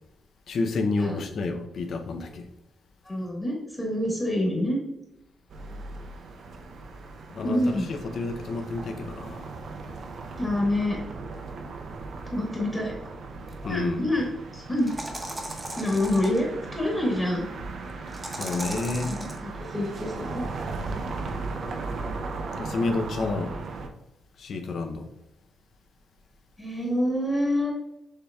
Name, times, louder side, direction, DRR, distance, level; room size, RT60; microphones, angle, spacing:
voice 1, 0.5-2.4 7.3-9.4 13.6-14.1 18.3-19.1 22.6-23.5 24.4-25.1, left 3 dB, 65° left, 0.5 m, -29 dB
voice 2, 3.0-4.8 7.4-7.9 10.4-11.0 12.3-12.9 13.6-14.3 14.5-14.9 15.7-17.4 19.0-20.4 26.6-27.7, left 1 dB, 20° left, 1.3 m, -27 dB
sound 1, 5.5-23.9, right 3 dB, 65° right, 0.5 m, -37 dB
sound 2, 13.5-13.6 14.8-16.4 18.1-19.4, right 1 dB, 20° right, 0.8 m, -36 dB
6.4 x 3.4 x 2.3 m
cardioid pair, 100°, 0 cm